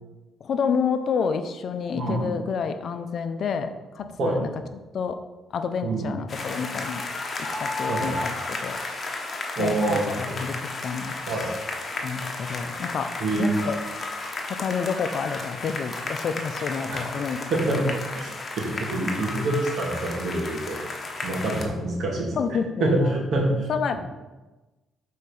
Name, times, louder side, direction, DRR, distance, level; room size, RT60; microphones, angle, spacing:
voice 1, 0.4-4.5 4.9-5.2 5.5-7.0 7.4-8.8 9.6-11.2 12.0-13.1 13.4-13.8 14.5-17.4 17.8-17.9 22.3-23.2 23.7-23.9, left 6 dB, 60° left, 8 dB, 0.6 m, -29 dB
voice 2, 2.0-2.3 4.2-4.4 5.8-6.1 7.9-8.2 9.6-10.4 11.3-11.5 13.2-13.7 16.9-17.1 17.5-17.8 18.1-20.8 21.2-22.3 22.8-24.0, right 2 dB, 65° right, -1 dB, 2.1 m, -26 dB
sound 1, 6.3-21.7, left 2 dB, 40° left, 1.2 m, -33 dB
6.5 x 4.2 x 5.4 m, 1.1 s
cardioid pair, 90°, 0 cm